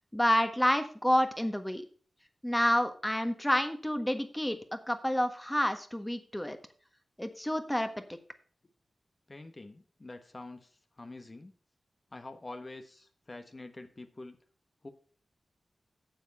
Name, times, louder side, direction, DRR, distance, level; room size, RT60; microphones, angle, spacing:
voice 1, 0.1-1.8 2.4-6.6 7.2-7.9, equal, 10° left, 8 dB, 1.4 m, -29 dB
voice 2, 9.3-11.5 12.1-14.4 14.8-14.9, left 2 dB, 35° left, 7 dB, 1.2 m, -46 dB
9.1 x 7.2 x 5.5 m, 0.42 s
cardioid pair, 60°, 0 cm